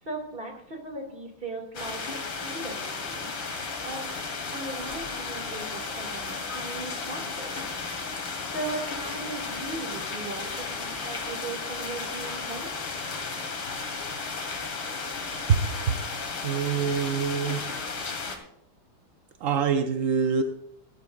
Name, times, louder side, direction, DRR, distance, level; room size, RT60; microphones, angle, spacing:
voice 1, 0.0-3.3 3.8-4.1 4.5-7.7 8.5-12.7, right 2 dB, 25° right, 2 dB, 2.8 m, -38 dB
sound 1, 1.7-18.4, left 4 dB, 90° left, 2.8 m, -34 dB
voice 2, 15.5-16.0 16.4-17.6 19.4-20.4, right 6 dB, 60° right, 6 dB, 0.8 m, -25 dB
19.0 x 12.0 x 2.6 m, 0.74 s
omnidirectional pair, 2.3 m